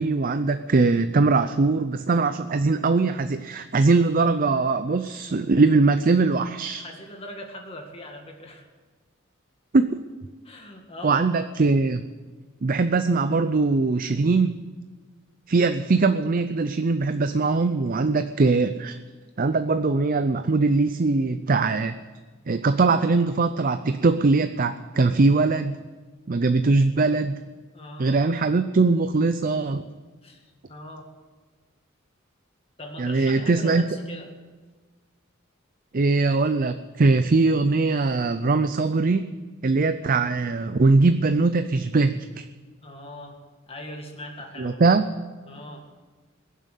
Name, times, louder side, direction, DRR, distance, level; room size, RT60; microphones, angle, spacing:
voice 1, 0.0-6.8 9.7-10.0 11.0-12.0 12.6-14.6 15.5-19.0 19.4-21.9 22.5-25.7 26.3-27.4 28.0-29.8 33.0-33.9 35.9-39.3 39.6-42.4 44.6-45.0, right 3 dB, 45° right, 10 dB, 0.5 m, -21 dB
voice 2, 6.8-8.6 10.4-11.4 27.7-28.2 30.2-30.4 30.7-31.1 32.8-34.3 42.8-43.4 43.7-44.8 45.5-45.9, left 1 dB, 30° left, 2 dB, 1.9 m, -40 dB
21.5 x 7.5 x 8.3 m, 1.4 s
head